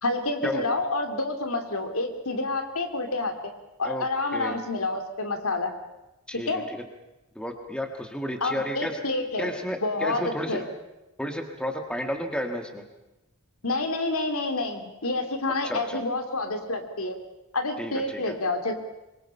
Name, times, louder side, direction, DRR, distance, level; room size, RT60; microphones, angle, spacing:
voice 1, 0.0-3.3 3.8-5.7 6.5-6.6 8.4-9.5 9.8-10.6 13.6-17.2 17.5-18.7, left 2 dB, 70° left, 6 dB, 2.7 m, -28 dB
voice 2, 7.4-9.0 9.4-10.7 11.2-12.8 15.6-16.0 17.8-18.4, equal, 5° left, 5 dB, 1.7 m, -32 dB
26.0 x 22.5 x 5.6 m, 0.99 s
head